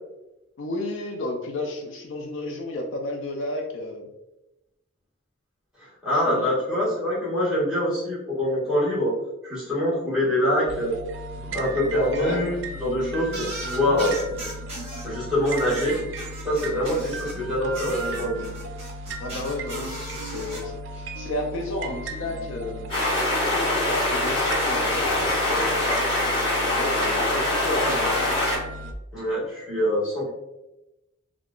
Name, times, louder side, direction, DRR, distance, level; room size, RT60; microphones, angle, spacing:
voice 1, 0.6-4.1 6.1-6.5 12.1-12.4 19.2-22.8 23.5-25.8 26.8-28.4, left 2 dB, 70° left, 2 dB, 0.4 m, -32 dB
voice 2, 6.0-9.1 9.4-10.9 11.5-14.1 15.0-15.9 16.4-18.4 29.1-30.3, left 1 dB, 5° right, -9 dB, 1.5 m, -24 dB
sound 1, 10.7-28.9, right 1 dB, 65° right, 0.3 m, -36 dB
sound 2, 13.3-15.1 15.4-17.4 17.7-20.6, right 2 dB, 30° right, 1.0 m, -37 dB
sound 3, 22.9-28.6, left 1 dB, 25° left, 1.3 m, -24 dB
3.5 x 2.3 x 2.3 m, 0.95 s
head